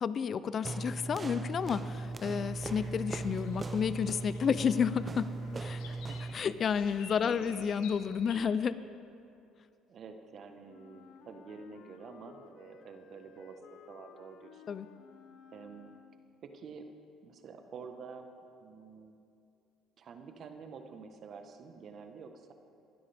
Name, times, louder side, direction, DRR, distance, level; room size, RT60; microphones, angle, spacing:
voice 1, 0.0-5.3 5.6-5.9 6.3-8.8 14.7-14.9, left 7 dB, 45° left, 15 dB, 0.5 m, -31 dB
sound 1, 0.6-6.4, right 3 dB, 30° right, 0.7 m, -38 dB
sound 2, 1.6-8.4, left 4 dB, 90° left, 1.3 m, -52 dB
voice 2, 5.9-6.4 7.2-7.7 9.9-13.6 13.9-14.6 15.5-15.9 16.4-16.9 17.2-18.3 18.6-19.2 20.0-22.5, right 5 dB, 50° right, 6 dB, 1.2 m, -48 dB
Wind instrument woodwind instrument, 10.6-16.5, left 8 dB, 70° left, 0.8 m, -56 dB
19.5 x 12.0 x 3.5 m, 2.5 s
supercardioid pair, 85°, 0 cm